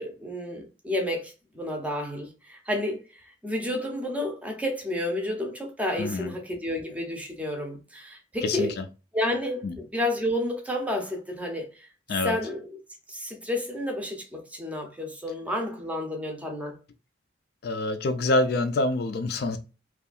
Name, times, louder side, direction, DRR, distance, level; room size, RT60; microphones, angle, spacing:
voice 1, 0.0-8.7 9.1-11.9 12.2-12.8 13.1-16.8, left 1 dB, 5° right, 0.5 m, -31 dB
voice 2, 6.0-6.3 8.4-8.8 9.6-9.8 12.1-12.4 17.6-19.6, left 2 dB, 55° left, 0.3 m, -26 dB
2.7 x 2.3 x 2.3 m
head